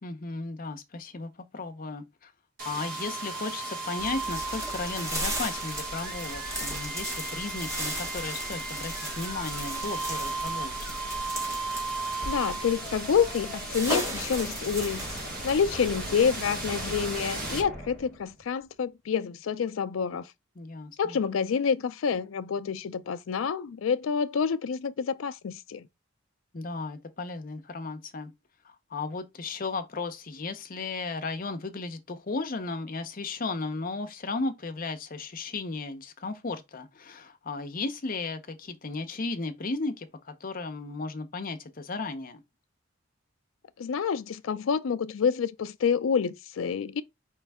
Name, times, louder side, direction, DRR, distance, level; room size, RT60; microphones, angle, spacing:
voice 1, 0.0-2.3 2.6-11.0 20.6-21.2 26.5-28.3 28.6-42.4, left 3 dB, 45° left, 0.7 m, -35 dB
sound 1, 2.6-18.4, right 2 dB, 50° right, 1.4 m, -35 dB
sound 2, 4.0-16.3, equal, 15° right, 1.7 m, -37 dB
voice 2, 12.3-20.3 21.0-25.9 43.8-47.0, left 6 dB, 80° left, 0.4 m, -28 dB
4.4 x 3.2 x 3.4 m
head